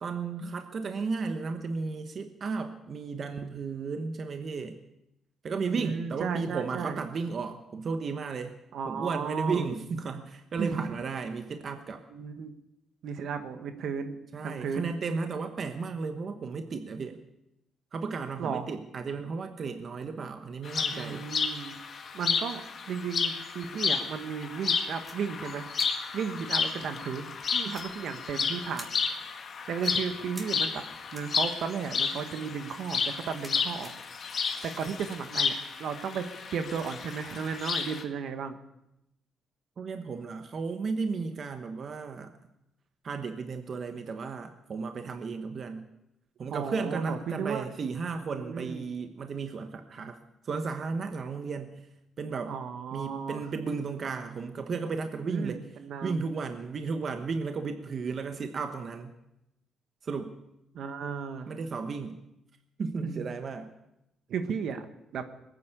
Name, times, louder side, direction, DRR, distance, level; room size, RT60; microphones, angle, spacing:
voice 1, 0.0-4.8 5.4-8.5 8.8-12.0 14.3-17.2 17.9-21.3 39.8-42.3 43.0-45.8 46.4-50.2 50.4-51.7 52.2-52.5 52.9-55.7 56.0-59.1 60.0-60.3 61.5-62.2 62.8-63.7, right 4 dB, 50° right, 7 dB, 1.1 m, -34 dB
voice 2, 5.7-7.0 8.7-9.7 10.6-10.9 12.1-12.5 13.0-14.9 18.4-18.7 20.9-21.7 22.1-22.6 22.9-25.7 26.1-28.9 29.7-30.8 31.1-33.9 34.6-38.5 46.5-47.7 48.2-48.9 52.5-53.4 55.2-56.3 60.7-61.5 63.0-63.2 64.3-64.8 65.1-65.3, right 6 dB, 70° right, 8 dB, 1.4 m, -34 dB
sound 1, 20.7-38.0, left 5 dB, 50° left, 1.8 m, -32 dB
sound 2, 25.0-25.1 25.7-25.9 27.7-28.3 28.7-28.9 29.8-29.9 30.3-30.4 31.1-31.4 32.3-32.6 33.0-33.9, equal, 5° right, 3.4 m, -46 dB
21.0 x 9.5 x 6.8 m, 0.86 s
cardioid pair, 90°, 0 cm